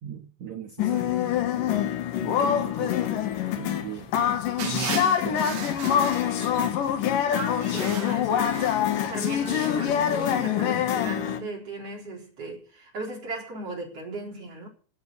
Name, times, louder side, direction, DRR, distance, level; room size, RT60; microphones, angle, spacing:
voice 1, 0.0-1.4 2.2-3.0 3.6-4.1 4.6-5.7, right 8 dB, 90° right, 1.5 m, -37 dB
sound 1, 0.8-11.4, left 9 dB, 70° left, 2.1 m, -25 dB
sound 2, 4.6-6.9 7.5-10.3, right 9 dB, 65° right, 3.4 m, -38 dB
voice 2, 6.2-8.6 9.1-14.7, right 2 dB, 30° right, 4.7 m, -37 dB
16.0 x 8.6 x 8.2 m
omnidirectional pair, 5.7 m